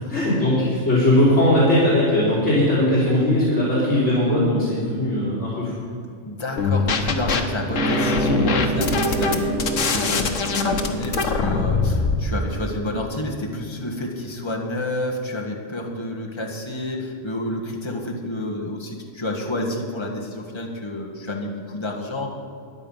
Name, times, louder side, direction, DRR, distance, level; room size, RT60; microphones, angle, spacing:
voice 1, 0.1-5.7, left 1 dB, 70° left, -10 dB, 3.9 m, -19 dB
voice 2, 6.2-22.3, left 1 dB, 20° left, -1 dB, 1.7 m, -29 dB
sound 1, 6.6-7.4 7.7-12.2, left 4 dB, 85° left, 1.4 m, -22 dB
sound 2, 7.7-13.0, right 1 dB, 65° right, 1.8 m, -28 dB
14.0 x 9.9 x 5.6 m, 2.4 s
omnidirectional pair, 1.3 m